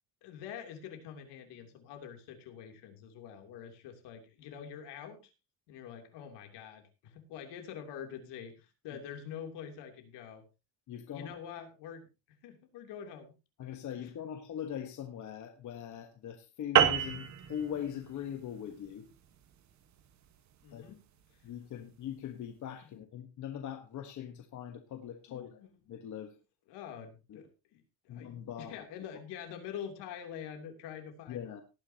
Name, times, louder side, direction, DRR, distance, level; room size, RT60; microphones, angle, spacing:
voice 1, 0.2-5.2 5.7-10.4 11.1-13.3 14.0-14.1 20.6-21.0 21.3-21.4 22.8-23.0 25.3-25.7 26.1-26.3 26.7-31.4, left 8 dB, 70° left, 5 dB, 3.1 m, -46 dB
voice 2, 10.9-11.3 13.6-19.1 20.7-21.0 21.4-25.6 25.9-26.3 27.3-27.4 28.1-28.8 31.3-31.6, left 9 dB, 45° left, 6 dB, 1.3 m, -41 dB
sound 1, 16.8-21.5, right 9 dB, 40° right, 1.4 m, -31 dB
18.5 x 9.8 x 2.8 m, 0.28 s
cardioid pair, 165°, 42 cm